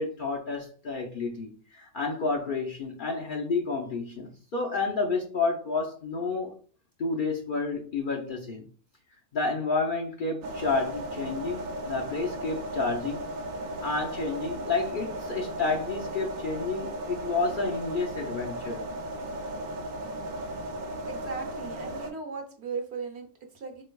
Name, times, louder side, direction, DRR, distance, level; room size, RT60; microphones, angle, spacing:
voice 1, 0.0-6.5 7.0-8.6 9.3-13.2 13.8-18.8, left 3 dB, 55° left, 0.6 m, -30 dB
sound 1, 10.4-22.1, right 1 dB, 85° right, 1.0 m, -36 dB
voice 2, 21.1-23.8, right 4 dB, 60° right, 1.0 m, -37 dB
4.2 x 3.2 x 2.2 m
omnidirectional pair, 1.3 m